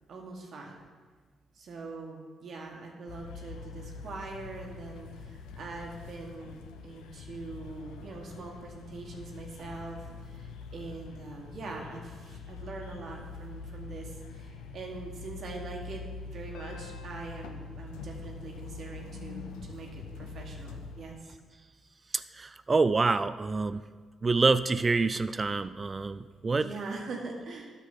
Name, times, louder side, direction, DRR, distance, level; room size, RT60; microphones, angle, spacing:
voice 1, 0.1-0.8 1.5-21.4 26.6-27.7, right 3 dB, 60° right, 0 dB, 1.3 m, -43 dB
sound 1, 3.1-21.0, left 4 dB, 75° left, 0.6 m, -44 dB
voice 2, 22.1-23.8 24.2-26.7, right 3 dB, 35° right, 14 dB, 0.3 m, -27 dB
8.7 x 5.8 x 5.7 m, 1.5 s
hypercardioid pair, 45°, 0 cm